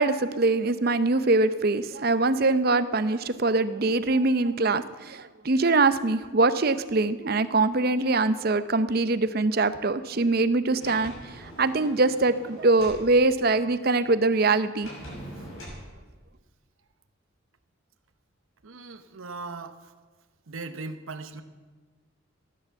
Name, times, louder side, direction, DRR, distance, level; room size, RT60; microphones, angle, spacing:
voice 1, 0.0-14.9, right 3 dB, 45° right, 13 dB, 0.6 m, -23 dB
Sliding door, 10.8-13.1 14.8-15.8, equal, 80° left, 6.3 m, -42 dB
voice 2, 18.6-19.9 20.5-21.4, right 3 dB, 80° right, 8 dB, 0.9 m, -39 dB
15.0 x 11.0 x 7.0 m, 1.4 s
head